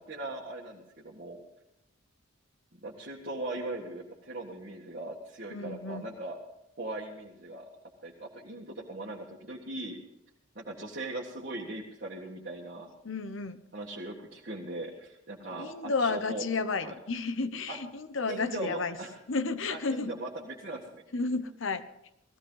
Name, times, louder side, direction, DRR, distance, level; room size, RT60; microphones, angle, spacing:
voice 1, 0.0-1.4 2.7-6.4 6.8-7.7 8.0-10.0 10.5-12.9 13.7-16.5 16.8-16.9 17.7-17.8 18.3-19.2 19.7-21.0, right 2 dB, 50° right, -4 dB, 1.7 m, -39 dB
voice 2, 5.5-6.1 13.0-13.6 15.5-19.0 19.3-20.1 21.1-21.8, left 4 dB, 65° left, 12 dB, 0.9 m, -32 dB
17.0 x 15.0 x 3.9 m, 0.87 s
head